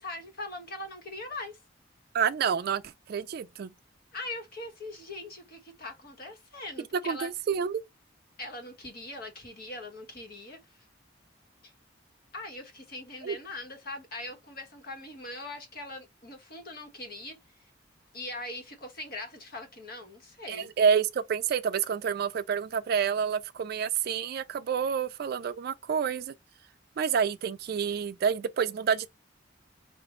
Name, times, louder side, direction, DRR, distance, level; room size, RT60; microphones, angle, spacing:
voice 1, 0.0-1.6 4.1-7.3 8.4-10.9 11.6-11.7 12.3-17.4 18.1-20.7, left 2 dB, 55° left, 1.3 m, -41 dB
voice 2, 2.1-3.7 7.0-7.8 13.2-13.4 20.5-26.3 27.0-29.1, right 7 dB, 55° right, 0.3 m, -28 dB
5.1 x 2.5 x 3.1 m
head